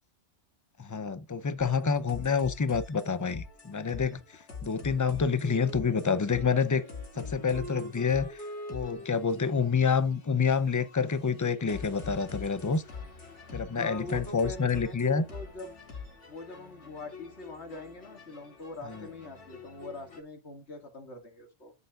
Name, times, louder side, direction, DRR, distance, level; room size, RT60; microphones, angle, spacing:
voice 1, 0.8-4.2 4.6-6.9 7.1-12.8 13.5-15.2 18.9-19.0, left 5 dB, 25° left, 0.4 m, -28 dB
sound 1, 1.6-20.2, left 5 dB, 85° left, 2.6 m, -45 dB
Wind instrument woodwind instrument, 5.4-12.0, right 1 dB, 40° right, 2.3 m, -46 dB
voice 2, 13.7-15.7 16.3-21.7, left 2 dB, 70° left, 2.3 m, -43 dB
11.0 x 6.8 x 2.4 m
omnidirectional pair, 1.2 m